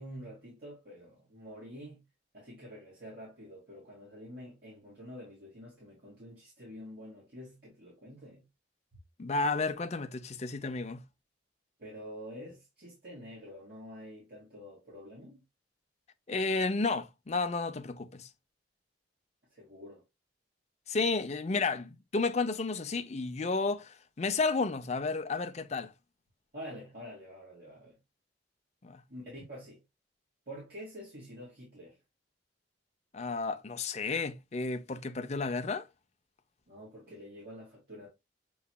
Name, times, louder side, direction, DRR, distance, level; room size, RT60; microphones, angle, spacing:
voice 1, 0.0-2.0 2.3-8.5 11.8-15.4 19.5-20.0 26.5-28.0 29.1-29.8 30.5-32.0 36.7-38.1, equal, 55° right, 2.1 m, -47 dB
voice 2, 9.2-11.0 16.3-18.3 20.9-25.9 28.8-29.0 33.1-35.9, left 3 dB, 35° left, 0.5 m, -32 dB
6.8 x 3.2 x 2.2 m
head